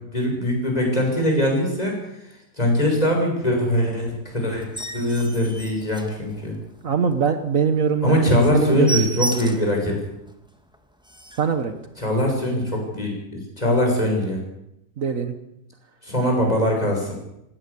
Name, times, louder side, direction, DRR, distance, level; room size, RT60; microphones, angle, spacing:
voice 1, 0.1-2.0 2.6-6.5 8.0-10.0 12.0-14.4 16.0-17.1, left 1 dB, 25° left, 1 dB, 6.8 m, -22 dB
sound 1, 4.6-6.7 7.2-7.3 7.7-7.8 8.1-8.2 8.5-9.8 10.3-10.4 10.7-10.8 11.0-11.6 12.3-12.5, right 2 dB, 5° right, 1.8 m, -32 dB
voice 2, 6.8-9.1 11.4-11.7 15.0-15.3, right 6 dB, 55° right, 9 dB, 1.5 m, -22 dB
19.0 x 16.5 x 8.5 m, 0.83 s
omnidirectional pair, 1.7 m